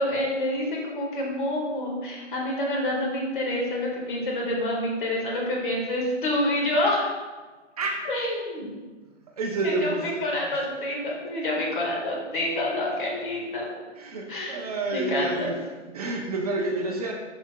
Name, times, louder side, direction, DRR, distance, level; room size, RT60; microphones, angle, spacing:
voice 1, 0.0-7.1 8.0-8.7 9.6-13.8 14.3-14.6 14.9-15.6, left 1 dB, 45° left, -2 dB, 1.7 m, -27 dB
voice 2, 7.8-8.1 9.3-10.3 10.5-10.7 14.0-15.6 15.9-17.1, right 2 dB, 30° right, 0 dB, 0.7 m, -29 dB
11.0 x 4.3 x 2.3 m, 1.3 s
hypercardioid pair, 160°, 37 cm